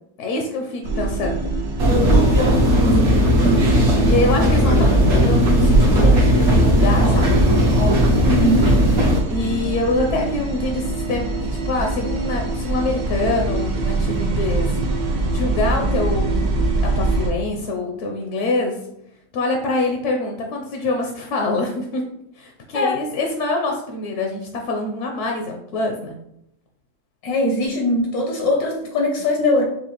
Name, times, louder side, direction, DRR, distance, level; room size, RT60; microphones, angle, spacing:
voice 1, 0.2-1.5 4.0-7.5 9.3-14.8 15.3-18.8 19.3-22.0 22.3-26.2, left 2 dB, 65° left, 2 dB, 0.8 m, -25 dB
sound 1, 0.8-17.3, right 2 dB, 90° right, 1.3 m, -24 dB
sound 2, 1.8-9.2, equal, 55° right, 1.1 m, -16 dB
voice 2, 8.3-8.7 22.7-23.0 27.2-29.6, left 1 dB, 80° left, 0 dB, 1.2 m, -21 dB
5.5 x 2.3 x 2.9 m, 0.77 s
omnidirectional pair, 1.5 m